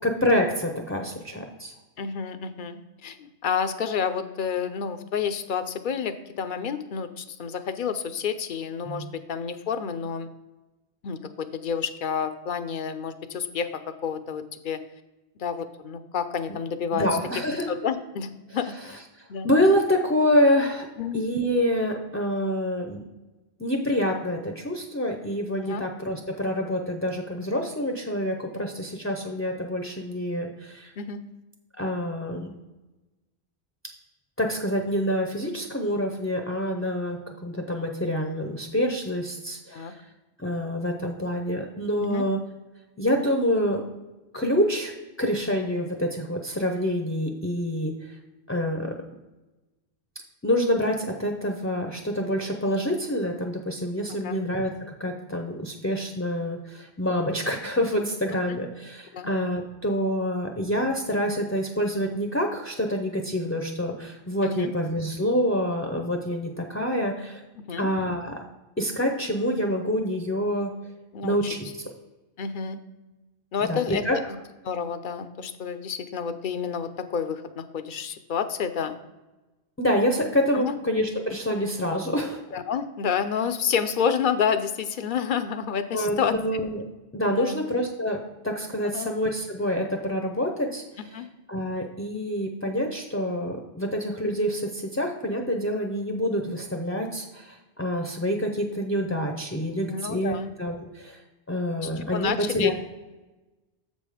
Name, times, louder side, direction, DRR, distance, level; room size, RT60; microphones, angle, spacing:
voice 1, 0.0-1.7 8.9-9.1 16.9-17.7 19.2-20.9 21.1-23.0 23.6-30.9 31.8-32.5 34.4-40.1 40.4-42.4 43.0-43.8 44.3-44.9 45.2-48.1 48.5-49.0 50.4-54.7 55.0-67.4 67.8-68.4 68.8-70.7 71.2-71.8 73.7-74.2 79.8-82.4 85.9-86.8 87.1-88.2 88.4-90.8 91.1-91.2 91.5-101.2 101.5-102.7, equal, 15° left, 3 dB, 0.5 m, -27 dB
voice 2, 2.0-10.3 11.0-14.8 15.4-17.1 17.7-19.0 19.3-19.5 21.0-21.2 25.6-25.8 31.0-31.2 39.7-39.9 42.0-42.2 54.1-54.4 58.5-58.6 59.1-59.3 64.4-64.7 67.7-67.9 71.1-71.4 72.4-72.8 73.5-74.2 74.6-79.0 80.5-80.7 82.5-86.3 87.3-87.6 88.9-89.1 91.1-91.3 99.9-100.5 101.8-102.7, left 7 dB, 60° left, 10 dB, 0.7 m, -29 dB
7.2 x 5.3 x 4.9 m, 1.1 s
omnidirectional pair, 1.1 m